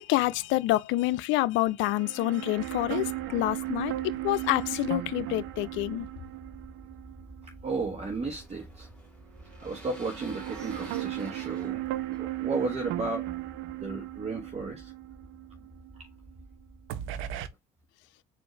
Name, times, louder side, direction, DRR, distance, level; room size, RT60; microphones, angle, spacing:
voice 1, 0.0-6.1, left 17 dB, 70° left, 0.4 m, -27 dB
sound 1, 1.8-8.1 8.4-8.5 9.6-16.5 16.9-17.5, right 16 dB, 75° right, 0.6 m, -36 dB
sound 2, 2.6-17.5, right 1 dB, 15° right, 0.7 m, -51 dB
voice 2, 7.4-8.9 9.6-13.3 13.8-14.9 16.0-16.1, right 3 dB, 30° right, 1.2 m, -34 dB
sound 3, 7.5-13.1, equal, 5° left, 1.9 m, -52 dB
4.3 x 2.5 x 3.2 m
hypercardioid pair, 65°, 21 cm